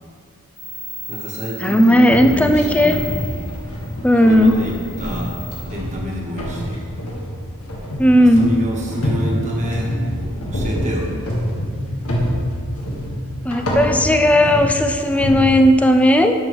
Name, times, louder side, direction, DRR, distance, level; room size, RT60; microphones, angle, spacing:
sound 1, 0.6-5.6, equal, 40° left, 1.8 m, -36 dB
voice 1, 1.1-3.0 4.2-5.3 5.7-6.8 8.2-10.0 10.5-11.1, equal, 35° right, -2 dB, 1.3 m, -28 dB
voice 2, 1.6-3.0 4.0-4.5 8.0-8.5 13.4-16.3, equal, 5° left, 6 dB, 0.4 m, -14 dB
sound 2, 2.1-15.4, equal, 90° left, 1.6 m, -26 dB
11.0 x 6.2 x 3.1 m, 2.2 s
head